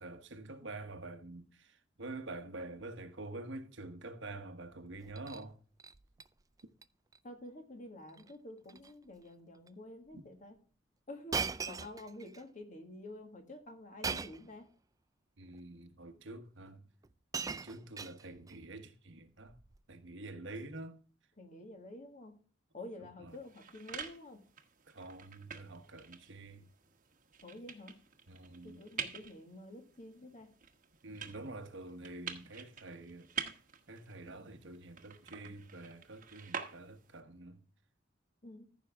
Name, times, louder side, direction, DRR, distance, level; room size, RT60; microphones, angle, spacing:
voice 1, 0.0-5.6 15.4-16.9 17.5-19.5 19.9-21.0 23.2-23.4 24.9-26.7 28.3-28.8 31.0-33.3 33.9-37.6, right 2 dB, 75° right, 1.2 m, -47 dB
Shatter, 5.0-5.4 5.8-6.3 6.6-6.8 7.1-7.2 8.1-8.3 8.6-8.9 9.7-9.8 11.3-12.4 14.0-14.5 15.5-15.6 16.7-16.8 17.0-18.6 19.5-19.8, right 5 dB, 20° right, 0.3 m, -40 dB
voice 2, 7.2-10.6 11.1-14.7 21.4-22.4 22.7-24.4 27.4-28.0 28.6-30.5 38.4-38.7, left 1 dB, 40° left, 1.9 m, -49 dB
sound 1, 23.3-37.2, right 6 dB, 45° right, 1.3 m, -47 dB
14.5 x 6.3 x 3.6 m
head